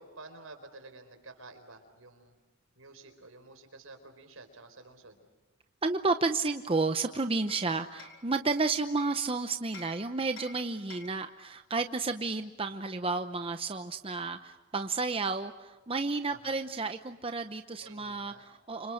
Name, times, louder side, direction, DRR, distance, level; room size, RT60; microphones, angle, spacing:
voice 1, 0.0-2.4 2.7-5.2 16.3-16.6 17.8-18.4, right 2 dB, 70° right, 7 dB, 4.6 m, -51 dB
voice 2, 5.8-18.9, right 3 dB, 25° right, 8 dB, 0.8 m, -31 dB
Hammer, 6.7-9.3 9.7-11.3, left 3 dB, 60° left, 5.6 m, -51 dB
29.0 x 26.5 x 6.5 m, 1.2 s
head